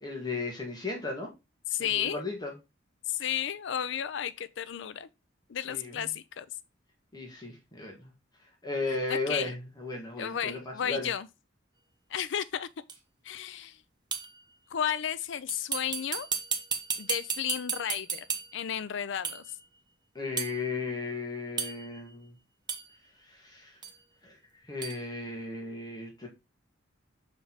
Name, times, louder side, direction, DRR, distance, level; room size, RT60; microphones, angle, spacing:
voice 1, 0.0-1.3 1.8-2.5 5.7-6.1 7.1-8.1 8.6-11.1 20.2-22.3 23.2-23.8 24.2-24.4 24.6-26.3, left 3 dB, 20° left, 1.7 m, -35 dB
voice 2, 1.7-2.2 3.1-5.1 5.5-6.5 9.1-9.5 10.2-11.3 12.1-12.7 13.2-13.8 14.7-16.3 17.0-18.3 18.5-19.4, left 9 dB, 70° left, 0.5 m, -33 dB
sound 1, 12.9-13.0 14.1-14.4 15.5-18.7 19.2-19.5 20.4-20.6 21.6-22.0 22.7-22.9 23.8-24.0 24.8-25.0, right 6 dB, 25° right, 0.9 m, -34 dB
6.6 x 4.5 x 4.0 m
head